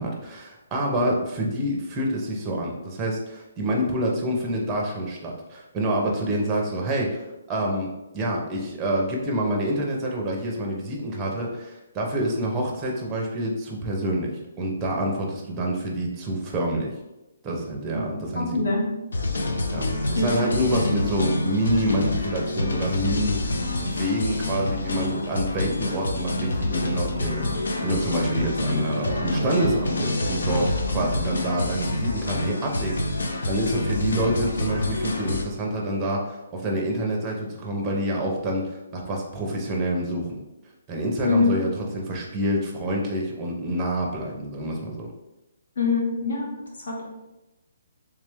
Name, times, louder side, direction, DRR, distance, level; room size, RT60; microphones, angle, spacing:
voice 1, 0.0-7.2 7.5-16.9 17.4-18.7 19.7-40.4 40.9-41.7 41.9-45.1, right 1 dB, 10° right, -1 dB, 0.6 m, -27 dB
voice 2, 18.3-18.9 20.1-20.3 20.7-20.8 41.2-41.6 45.8-46.5 46.8-47.1, left 4 dB, 65° left, -2 dB, 1.3 m, -24 dB
sound 1, 19.1-35.4, left 2 dB, 80° left, 0.6 m, -27 dB
3.3 x 3.2 x 3.3 m, 0.97 s
hypercardioid pair, 170°, 0 cm